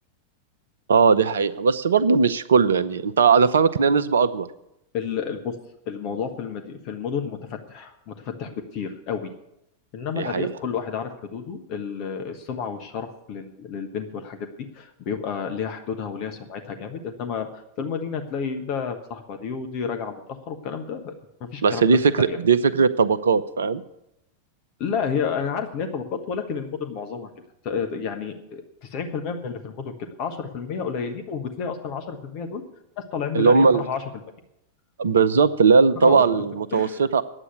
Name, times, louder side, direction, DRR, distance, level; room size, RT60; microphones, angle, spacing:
voice 1, 0.9-4.5 10.2-10.5 21.6-23.8 33.3-33.8 35.0-37.2, right 5 dB, 65° right, 15 dB, 0.6 m, -19 dB
voice 2, 4.9-5.5 5.9-9.3 9.9-21.1 21.4-21.8 22.2-22.4 24.8-27.3 27.6-32.6 33.0-34.0 35.9-36.4 36.7-37.0, left 6 dB, 40° left, 5 dB, 1.2 m, -31 dB
9.9 x 8.2 x 9.3 m, 0.83 s
figure-of-eight pair, 90°, 0 cm